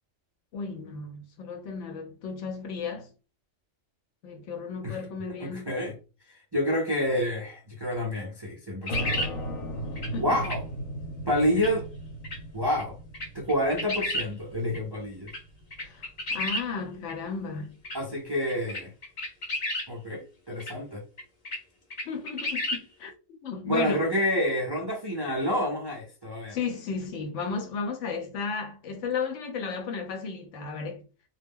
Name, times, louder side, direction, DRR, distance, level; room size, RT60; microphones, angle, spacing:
voice 1, 0.5-3.1 4.2-5.8 10.1-10.3 15.8-17.7 22.1-23.1 23.4-24.1 26.5-31.0, left 5 dB, 70° left, 0.8 m, -34 dB
voice 2, 5.4-5.9 6.5-9.2 10.2-10.6 11.3-11.8 12.5-13.0 13.3-15.3 17.9-18.9 19.9-21.0 23.6-26.6, equal, 40° right, 0.3 m, -28 dB
sound 1, 8.9-16.3, right 1 dB, 90° left, 1.2 m, -37 dB
sound 2, 8.9-9.3 10.0-10.1 10.4-10.6 11.6-11.7 12.2-12.4 12.8-12.9 13.1-14.3 14.7-14.8 15.3-15.4 15.7-16.6 17.1-17.2 17.8-18.0 18.5-19.9 20.6-20.7 21.2-21.6 21.9-22.8, left 1 dB, 40° left, 0.6 m, -31 dB
2.2 x 2.0 x 3.5 m
omnidirectional pair, 1.4 m